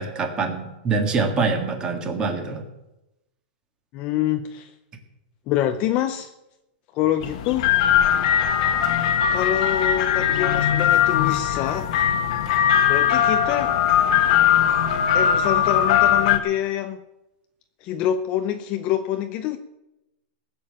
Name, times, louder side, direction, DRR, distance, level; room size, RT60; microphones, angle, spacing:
voice 1, 0.0-2.6, right 4 dB, 15° right, 5 dB, 1.7 m, -25 dB
voice 2, 3.9-4.7 5.5-6.3 6.9-7.7 9.3-11.9 12.9-13.8 15.1-17.0 17.8-19.6, left 11 dB, 25° left, 8 dB, 0.5 m, -26 dB
sound 1, 7.2-16.4, left 9 dB, 40° left, 1.3 m, -20 dB
18.5 x 7.1 x 8.7 m, 0.94 s
supercardioid pair, 175°, 5 cm